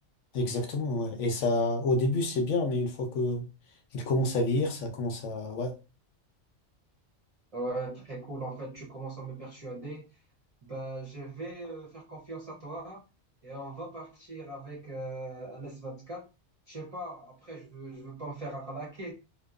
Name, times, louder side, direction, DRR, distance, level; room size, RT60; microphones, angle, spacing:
voice 1, 0.3-3.4 3.9-5.7, left 2 dB, 70° left, 0.9 m, -28 dB
voice 2, 7.5-10.2 10.6-13.0 13.4-16.2 16.7-19.1, right 2 dB, 40° right, 0.5 m, -39 dB
2.8 x 2.0 x 2.3 m
omnidirectional pair, 1.4 m